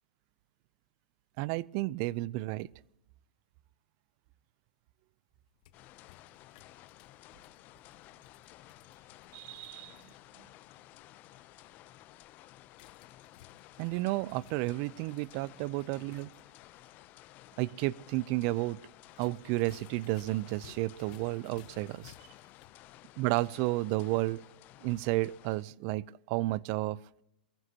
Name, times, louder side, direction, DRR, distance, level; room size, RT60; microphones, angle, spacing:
voice 1, 1.4-2.7 9.3-10.0 13.8-16.3 17.6-18.8 19.2-22.1 23.2-24.4 24.8-27.0, right 19 dB, 45° right, 23 dB, 0.5 m, -32 dB
sound 1, 5.4-10.1 12.7-16.4 16.7-16.8 19.1-22.8, left 12 dB, 55° left, 1.1 m, -59 dB
sound 2, 5.7-25.6, left 16 dB, 35° left, 0.6 m, -55 dB
22.5 x 15.0 x 2.9 m, 0.82 s
hypercardioid pair, 130°, 5 cm